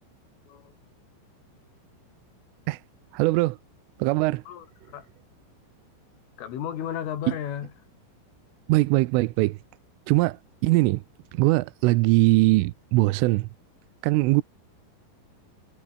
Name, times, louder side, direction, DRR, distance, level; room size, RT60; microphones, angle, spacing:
voice 1, 3.1-3.6 4.0-4.4 8.7-9.6 10.1-11.0 11.3-13.5 14.0-14.4, right 21 dB, 85° right, 3.3 m, -21 dB
voice 2, 4.5-5.1 6.4-7.7, left 9 dB, 80° left, 5.6 m, -34 dB
omnidirectional pair, 5.6 m